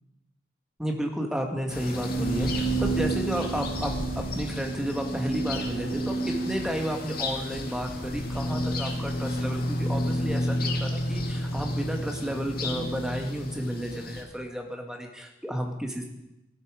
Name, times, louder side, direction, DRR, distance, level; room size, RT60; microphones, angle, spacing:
voice 1, 0.8-16.0, equal, 5° right, 2 dB, 1.8 m, -32 dB
sound 1, 1.7-14.2, right 1 dB, 50° left, 1.9 m, -30 dB
14.5 x 12.5 x 5.1 m, 0.89 s
head